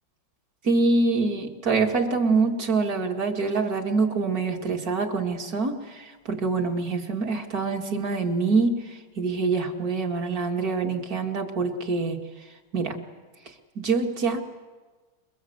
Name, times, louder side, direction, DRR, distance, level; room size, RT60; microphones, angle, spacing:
voice 1, 0.7-12.2 12.7-13.0 13.8-14.4, right 4 dB, 45° right, 3 dB, 2.4 m, -25 dB
27.5 x 22.0 x 8.0 m, 1.3 s
omnidirectional pair, 2.2 m